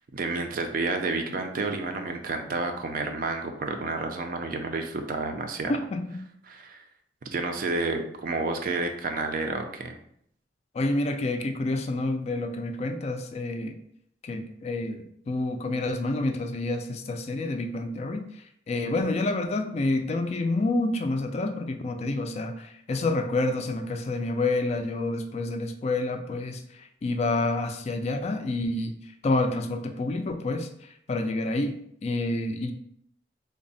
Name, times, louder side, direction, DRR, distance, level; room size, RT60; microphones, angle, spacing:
voice 1, 0.1-5.7 6.5-6.8 7.3-9.9, right 3 dB, 50° right, 5 dB, 0.4 m, -30 dB
voice 2, 5.7-6.2 10.7-13.8 14.2-18.3 18.7-28.9 29.2-30.7 31.1-32.7, left 2 dB, 35° left, 6 dB, 0.3 m, -28 dB
3.4 x 2.0 x 3.9 m, 0.68 s
head